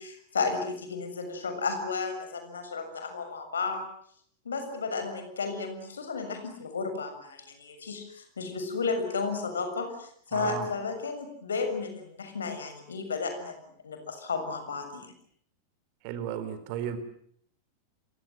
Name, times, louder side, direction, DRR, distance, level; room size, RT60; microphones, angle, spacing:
voice 1, 0.0-3.8 4.4-13.6 13.8-15.1, left 4 dB, 70° left, 8 dB, 6.8 m, -33 dB
voice 2, 10.3-10.7 16.0-17.0, right 10 dB, 45° right, 12 dB, 4.4 m, -34 dB
28.5 x 24.0 x 7.9 m, 0.66 s
figure-of-eight pair, 90°, 0 cm